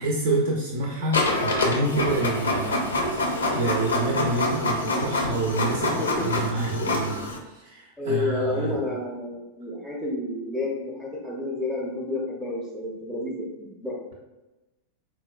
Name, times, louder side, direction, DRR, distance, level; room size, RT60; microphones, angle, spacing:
voice 1, 0.0-8.7, right 2 dB, 55° right, -1 dB, 0.4 m, -28 dB
Printer, 1.1-7.4, left 2 dB, 70° left, 0.4 m, -26 dB
voice 2, 5.9-6.3 6.8-7.1 8.0-14.0, left 2 dB, ahead, -4 dB, 0.5 m, -30 dB
4.1 x 2.2 x 2.2 m, 1.1 s
figure-of-eight pair, 90°, 0 cm